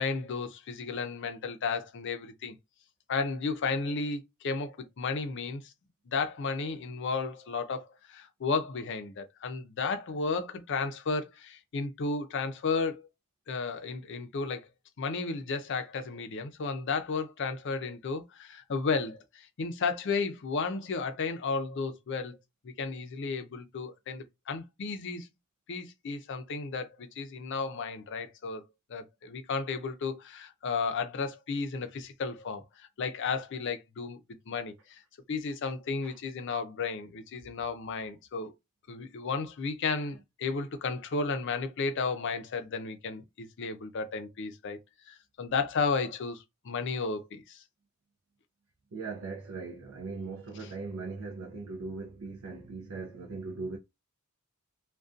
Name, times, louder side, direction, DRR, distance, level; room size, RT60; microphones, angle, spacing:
voice 1, 0.0-2.5 3.1-5.7 6.1-13.1 13.5-14.7 15.0-22.4 22.6-25.3 25.7-28.6 28.9-34.2 34.5-35.0 35.3-38.5 38.9-44.8 45.1-47.6 50.6-50.7, left 4 dB, 55° left, 0.4 m, -33 dB
voice 2, 48.9-53.8, right 4 dB, 70° right, 0.5 m, -39 dB
2.5 x 2.2 x 2.4 m
head